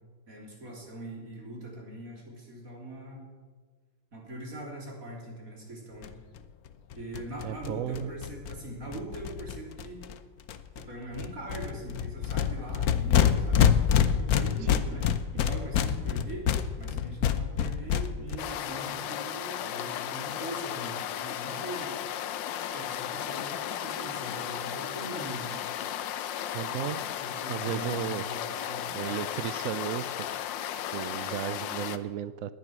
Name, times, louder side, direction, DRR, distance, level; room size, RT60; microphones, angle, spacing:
voice 1, 0.3-3.3 4.1-6.1 6.9-10.0 10.8-16.5 16.8-22.0 22.7-25.7 27.2-29.2, right 1 dB, 50° right, -1 dB, 3.9 m, -42 dB
sound 1, 6.0-6.1 6.4-6.5 6.7-6.8 6.9-10.1 10.5-10.8 11.1-18.4, left 8 dB, 60° left, 1.1 m, -27 dB
voice 2, 7.4-8.1 14.7-14.9 26.5-27.0 27.5-28.3 28.9-30.1 30.9-32.5, right 10 dB, 70° right, 14 dB, 0.8 m, -34 dB
sound 2, 18.4-32.0, left 10 dB, 85° left, 1.4 m, -35 dB
19.0 x 10.5 x 6.1 m, 1.5 s
omnidirectional pair, 1.9 m